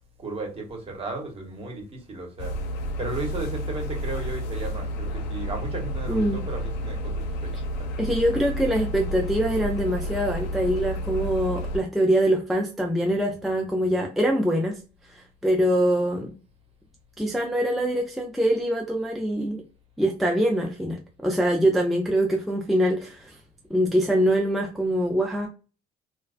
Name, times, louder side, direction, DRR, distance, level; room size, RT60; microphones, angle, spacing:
voice 1, 0.2-2.5 3.0-7.5 7.8-7.9, right 2 dB, 35° right, 1.0 m, -35 dB
sound 1, 2.4-11.8, equal, 90° left, 0.4 m, -31 dB
voice 2, 6.1-6.4 8.0-14.8 15.1-16.3 17.2-19.6 20.0-23.3 23.7-25.5, equal, ahead, 0.3 m, -24 dB
2.3 x 2.2 x 2.4 m
cardioid pair, 110°, 17 cm